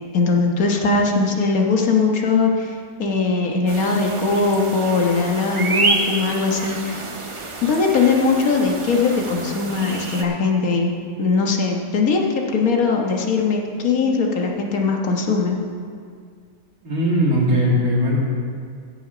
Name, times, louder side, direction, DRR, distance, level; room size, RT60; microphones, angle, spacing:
voice 1, 0.1-2.7 3.0-7.0 7.6-10.9 11.2-15.6, left 4 dB, 60° left, 1 dB, 1.7 m, -20 dB
sound 1, 3.7-10.2, right 3 dB, 30° right, 0.6 m, -28 dB
voice 2, 16.8-18.2, equal, 60° right, -4 dB, 2.6 m, -19 dB
16.5 x 6.8 x 5.0 m, 2.1 s
omnidirectional pair, 1.7 m